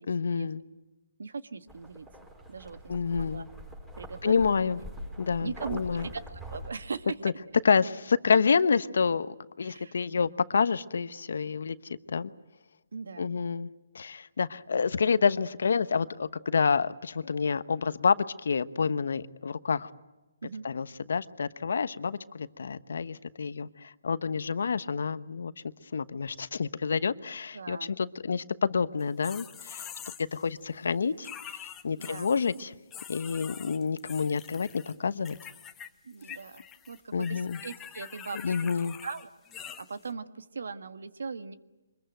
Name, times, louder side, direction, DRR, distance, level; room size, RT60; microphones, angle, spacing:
voice 1, 0.1-0.6 2.9-3.4 4.2-4.8 5.2-6.1 7.2-7.3 7.6-11.8 12.1-12.3 13.2-13.7 13.9-19.9 20.6-25.5 25.9-29.9 30.3-31.3 31.8-32.7 33.1-35.4 37.1-37.6 38.4-38.9, left 5 dB, 70° left, 14 dB, 1.0 m, -28 dB
voice 2, 1.2-2.1 2.5-3.4 4.0-4.4 5.4-7.1 9.6-10.0 12.9-13.3 20.4-20.6 27.5-28.0 32.0-32.3 36.0-38.5 39.0-41.6, right 5 dB, 75° right, 11 dB, 1.5 m, -40 dB
sound 1, 1.7-6.7, equal, 10° right, 5.0 m, -44 dB
sound 2, 29.0-30.5 31.2-32.6 32.9-34.9 35.2-35.9 36.1-40.1, left 9 dB, 10° left, 1.2 m, -45 dB
24.5 x 21.5 x 9.1 m, 1.1 s
hypercardioid pair, 155°, 0 cm